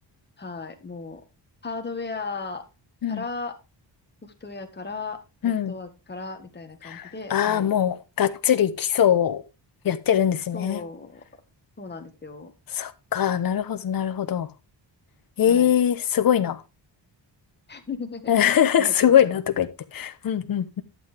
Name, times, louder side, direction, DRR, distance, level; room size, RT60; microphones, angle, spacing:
voice 1, 0.4-1.2 1.6-2.6 3.1-3.6 4.2-7.7 10.5-11.2 11.8-12.5 15.4-15.7 17.7-19.4, left 4 dB, 25° left, 1.7 m, -36 dB
voice 2, 5.4-5.7 6.8-9.4 9.8-10.8 12.7-14.5 15.4-16.6 18.3-20.8, left 9 dB, 50° left, 0.9 m, -22 dB
11.5 x 7.8 x 3.4 m
wide cardioid pair, 155°, 43 cm